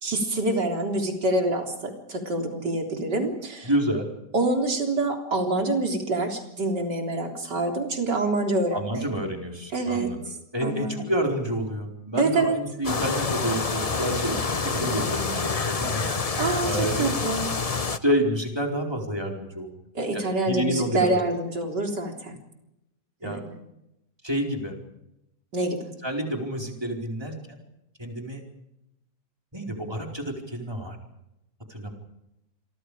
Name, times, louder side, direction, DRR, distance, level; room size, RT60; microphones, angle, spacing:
voice 1, 0.0-3.7 4.3-9.0 9.7-10.1 10.6-11.1 12.2-12.6 14.3-14.4 16.4-17.5 19.9-22.4 23.2-23.6 25.5-25.8, right 2 dB, 85° right, 3 dB, 4.3 m, -26 dB
voice 2, 3.6-4.1 8.7-10.2 10.5-16.0 16.6-17.1 18.0-19.7 20.1-21.2 23.2-23.4 24.2-24.8 26.0-27.6 28.0-28.4 29.5-31.0 31.7-31.9, equal, 15° right, 1 dB, 4.5 m, -29 dB
sound 1, 12.8-18.0, left 4 dB, 30° left, 0.7 m, -27 dB
28.0 x 24.5 x 5.0 m, 0.87 s
omnidirectional pair, 1.8 m